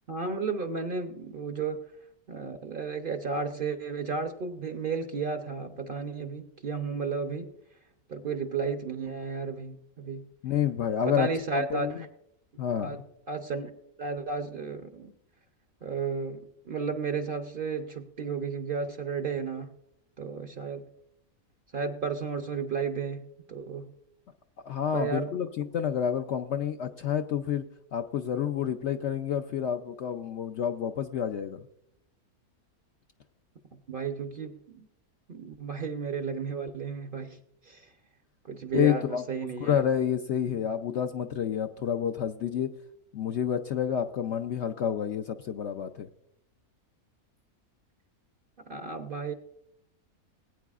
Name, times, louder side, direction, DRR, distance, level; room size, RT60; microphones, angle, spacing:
voice 1, 0.1-1.8 2.3-7.5 8.1-10.3 11.1-12.1 12.8-13.0 13.3-13.7 14.0-15.1 15.8-19.8 20.2-20.9 21.7-23.9 24.9-25.3 33.7-34.9 35.3-37.9 38.4-39.8 40.5-40.6 48.6-49.3, right 5 dB, 50° right, 6 dB, 0.7 m, -33 dB
voice 2, 10.4-11.3 11.6-12.0 12.6-13.0 24.7-27.6 27.9-31.6 38.7-39.2 39.6-42.7 43.1-46.1, left 9 dB, 65° left, 6 dB, 0.7 m, -29 dB
20.0 x 9.1 x 2.4 m, 0.78 s
omnidirectional pair, 1.6 m